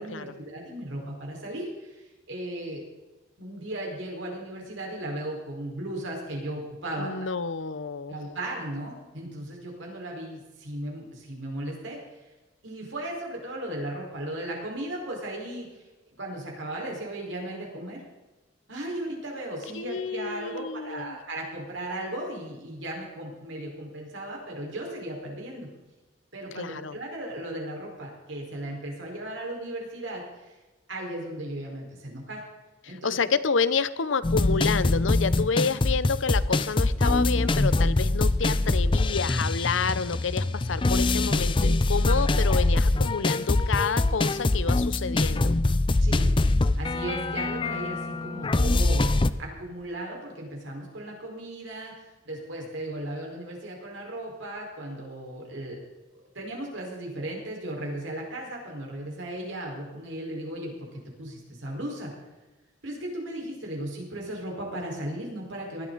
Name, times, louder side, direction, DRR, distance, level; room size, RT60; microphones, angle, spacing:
voice 1, 0.0-2.8 3.4-7.1 8.1-12.0 12.6-15.8 16.2-18.0 18.7-25.7 26.3-30.5 30.9-32.4 32.9-33.3 46.0-46.3 46.7-49.1 49.4-55.8 56.1-60.7 61.2-62.1 62.8-65.9, right 1 dB, 80° right, -1 dB, 4.9 m, -36 dB
voice 2, 7.0-8.1 19.7-21.2 26.5-27.0 32.8-45.5, left 5 dB, 85° left, 15 dB, 0.7 m, -29 dB
sound 1, 34.2-49.3, left 2 dB, 25° left, 0.5 m, -24 dB
19.0 x 12.5 x 4.1 m, 1.2 s
head